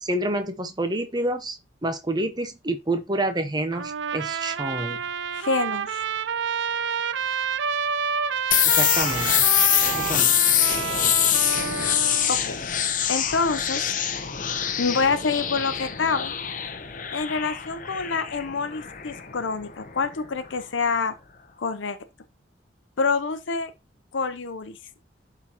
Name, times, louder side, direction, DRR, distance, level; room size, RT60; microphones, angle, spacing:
voice 1, 0.0-5.0 8.7-9.5 9.9-10.4, right 1 dB, 20° right, 0.8 m, -28 dB
Trumpet, 3.7-12.3, right 7 dB, 70° right, 0.4 m, -29 dB
voice 2, 5.3-6.0 12.3-12.7 13.1-13.8 14.8-16.3 17.1-21.1 21.6-22.0 23.0-23.7 24.1-24.8, left 4 dB, 75° left, 0.7 m, -26 dB
sound 1, 8.5-20.1, left 10 dB, 45° left, 0.8 m, -24 dB
11.5 x 3.9 x 2.9 m
head